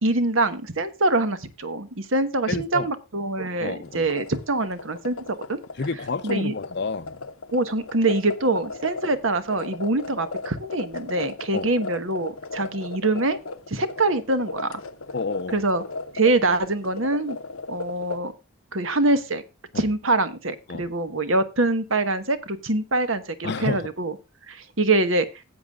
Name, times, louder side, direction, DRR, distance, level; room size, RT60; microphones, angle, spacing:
voice 1, 0.0-5.6 6.2-6.5 7.5-13.4 13.7-14.7 15.5-15.8 16.1-17.4 17.7-18.3 18.7-19.4 19.7-24.2 24.5-25.3, right 2 dB, 70° right, 1.2 m, -24 dB
voice 2, 2.5-2.9 3.6-4.1 5.8-7.2 11.5-11.7 15.1-15.6 19.7-19.9 20.7-20.9 23.4-23.8, left 4 dB, 50° left, 0.6 m, -29 dB
sound 1, 3.9-18.2, left 3 dB, 80° left, 0.8 m, -36 dB
16.5 x 8.1 x 2.3 m
head